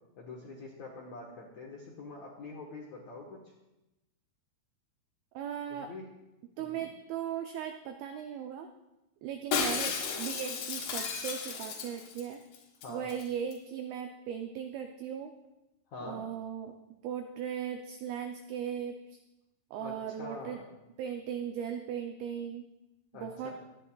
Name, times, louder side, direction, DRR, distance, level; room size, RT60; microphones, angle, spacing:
voice 1, 0.2-3.4 5.7-6.1 6.6-6.9 12.8-13.1 15.9-16.2 19.8-20.7 23.1-23.5, left 3 dB, 65° left, -2 dB, 1.9 m, -45 dB
voice 2, 5.3-5.9 6.6-8.7 9.2-12.4 12.9-15.3 16.0-16.8 17.0-19.2 19.7-20.6 21.0-22.7 23.1-23.5, right 8 dB, 85° right, 4 dB, 2.1 m, -38 dB
Shatter, 9.5-12.3 12.5-12.6 12.8-13.2 13.5-13.6, left 6 dB, 80° left, 3.9 m, -34 dB
23.5 x 9.9 x 2.3 m, 0.96 s
omnidirectional pair, 5.1 m